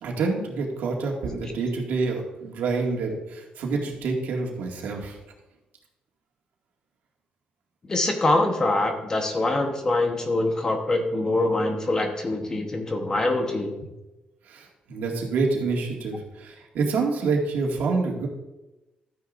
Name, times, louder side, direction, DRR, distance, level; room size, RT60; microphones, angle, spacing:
voice 1, 0.0-5.2 14.4-18.3, right 4 dB, 90° right, -1 dB, 2.1 m, -27 dB
voice 2, 7.8-13.7, left 2 dB, 20° left, 4 dB, 1.1 m, -24 dB
12.5 x 9.6 x 2.6 m, 1.0 s
cardioid pair, 175°, 3 cm